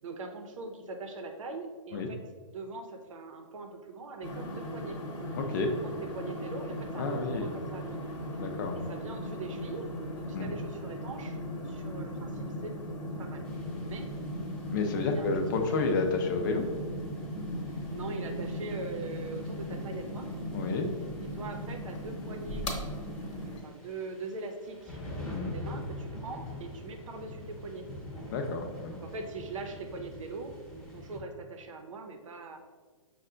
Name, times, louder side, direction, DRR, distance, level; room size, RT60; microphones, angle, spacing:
voice 1, 0.0-5.0 5.4-5.5 5.8-8.1 8.7-12.7 13.2-13.5 13.8-14.1 15.1-15.6 17.9-20.3 21.3-22.7 23.2-27.9 29.0-32.6, right 3 dB, 65° right, 5 dB, 0.7 m, -42 dB
sound 1, 4.2-23.6, equal, 60° left, 1.0 m, -38 dB
voice 2, 5.4-5.7 7.0-7.5 8.4-8.8 10.3-10.5 14.7-16.7 20.5-20.9 25.3-25.5 28.3-29.0, left 3 dB, 35° left, 4 dB, 0.5 m, -30 dB
sound 2, 13.4-31.2, left 1 dB, 5° left, 0.8 m, -46 dB
5.4 x 2.2 x 3.7 m, 1.4 s
hypercardioid pair, 155°, 17 cm